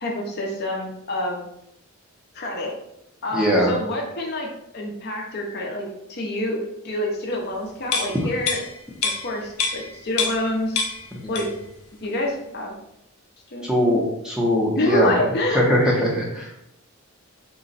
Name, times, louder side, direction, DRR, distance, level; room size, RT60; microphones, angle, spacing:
voice 1, 0.0-1.4 2.3-2.8 3.2-4.5 4.7-8.6 9.2-10.8 11.3-11.5 12.0-12.7 13.5-14.0 14.8-15.6, left 1 dB, 45° left, 0 dB, 0.7 m, -27 dB
voice 2, 3.3-3.7 8.2-8.3 11.1-11.2 13.6-15.2 15.5-16.6, equal, 5° right, -3 dB, 0.6 m, -21 dB
sound 1, 7.9-10.5 10.8-11.7 12.0-12.2, left 4 dB, 85° left, 0.6 m, -27 dB
3.8 x 2.2 x 4.0 m, 0.80 s
head